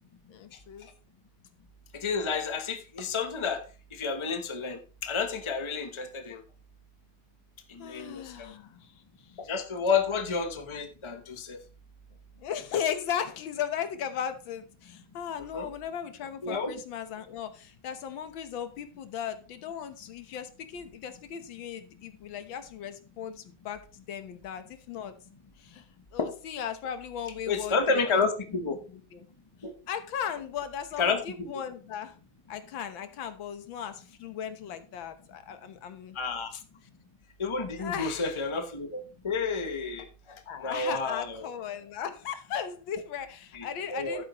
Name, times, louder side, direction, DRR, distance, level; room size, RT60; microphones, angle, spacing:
voice 1, 0.3-0.9 7.8-8.9 9.2-9.3 10.1-10.2 12.4-25.2 25.6-25.9 26.1-28.2 28.5-29.3 29.9-32.2 32.5-36.2 36.5-36.6 37.8-38.4 40.5-44.2, left 8 dB, 75° left, 10 dB, 1.8 m, -37 dB
voice 2, 1.9-3.6 3.9-6.4 7.7-8.5 9.4-11.6 15.5-15.7 16.4-16.7 26.2-26.3 27.5-28.8 29.6-29.7 31.0-31.5 36.1-36.5 37.4-41.5 43.5-43.6 43.9-44.2, left 4 dB, 50° left, 7 dB, 0.3 m, -30 dB
11.5 x 9.0 x 3.0 m, 0.34 s
omnidirectional pair, 2.2 m